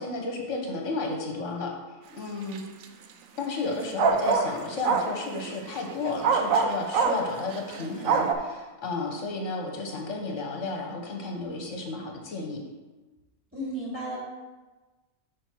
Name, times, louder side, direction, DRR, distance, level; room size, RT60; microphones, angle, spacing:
voice 1, 0.0-2.6 3.4-12.6, left 3 dB, 60° left, 1 dB, 1.4 m, -33 dB
sound 1, 2.5-2.8 4.0-6.0 6.2-8.3, right 5 dB, 75° right, 1.0 m, -24 dB
voice 2, 13.5-14.2, right 1 dB, 10° right, -7 dB, 2.3 m, -34 dB
6.5 x 5.1 x 4.5 m, 1.2 s
omnidirectional pair, 1.5 m